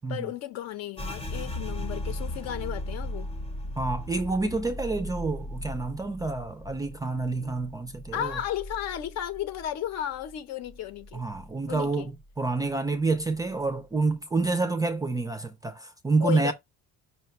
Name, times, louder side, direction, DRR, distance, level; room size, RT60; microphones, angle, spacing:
voice 1, 0.1-3.3 8.1-11.2 11.7-12.1 16.2-16.5, left 11 dB, 60° left, 0.9 m, -34 dB
sound 1, 1.0-10.4 10.7-11.9 12.2-12.7 13.1-13.7, left 1 dB, 20° left, 0.8 m, -38 dB
voice 2, 3.8-8.4 11.1-16.5, right 3 dB, 15° right, 0.3 m, -28 dB
5.6 x 2.2 x 4.2 m
cardioid pair, 170°, 29 cm